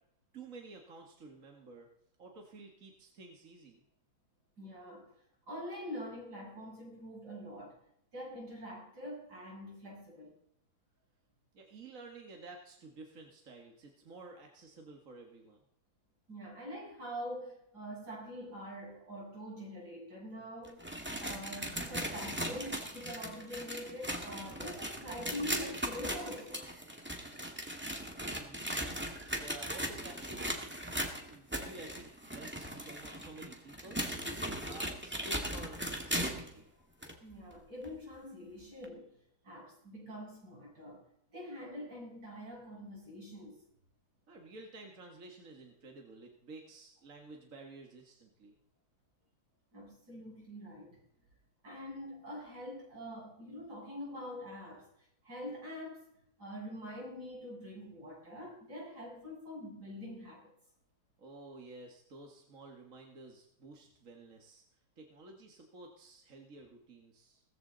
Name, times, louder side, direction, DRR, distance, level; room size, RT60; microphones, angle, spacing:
voice 1, 0.3-1.9 2.2-3.8 11.5-15.6 24.5-24.7 28.3-28.8 29.3-30.8 31.3-34.0 34.6-36.7 44.3-48.5 61.2-67.4, right 3 dB, 55° right, 2 dB, 2.1 m, -52 dB
voice 2, 4.6-5.1 5.4-7.8 8.1-10.3 16.3-20.9 21.2-26.6 37.2-39.1 39.4-41.0 41.3-43.6 49.7-51.0 51.6-56.1 56.4-60.5, equal, 85° right, -4 dB, 8.4 m, -45 dB
sound 1, 20.6-36.5 37.0-37.1 37.8-37.9 38.8-38.9, equal, 5° right, 2.1 m, -38 dB
18.5 x 14.5 x 4.0 m, 0.75 s
omnidirectional pair, 1.7 m